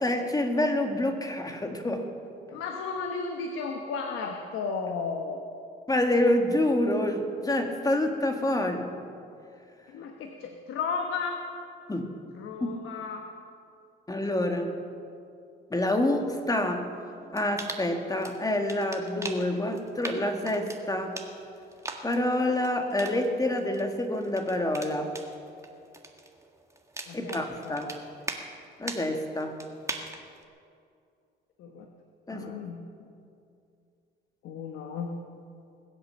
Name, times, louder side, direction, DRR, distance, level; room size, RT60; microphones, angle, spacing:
voice 1, 0.0-2.1 5.9-9.0 11.9-12.1 12.6-12.7 14.1-14.7 15.7-16.9 17.3-21.2 22.0-25.1 27.1-27.9 28.8-29.6 32.3-32.5, left 1 dB, 20° left, 4 dB, 1.9 m, -27 dB
voice 2, 2.5-5.4 9.9-11.5 12.3-13.3 27.1-27.9 31.6-31.9 32.3-33.1 34.4-35.2, left 5 dB, 90° left, 3 dB, 1.2 m, -34 dB
sound 1, 17.4-28.5 28.8-29.1 29.4-30.4, right 2 dB, 15° right, 1.7 m, -41 dB
21.0 x 8.1 x 7.2 m, 2.5 s
cardioid pair, 90°, 20 cm